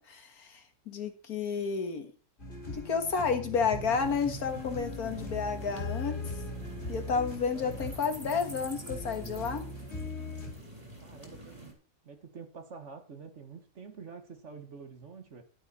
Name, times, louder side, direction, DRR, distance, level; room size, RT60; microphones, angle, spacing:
voice 1, 0.0-2.1 2.7-6.2 6.9-9.7, left 5 dB, 65° left, 7 dB, 2.0 m, -31 dB
sound 1, 2.4-10.5, left 2 dB, 45° left, 2.7 m, -40 dB
sound 2, 3.8-11.7, right 1 dB, 20° right, 3.2 m, -46 dB
voice 2, 7.5-8.0 11.0-11.7 12.0-15.4, right 5 dB, 50° right, 7 dB, 1.5 m, -47 dB
11.0 x 9.8 x 4.2 m, 0.38 s
omnidirectional pair, 1.7 m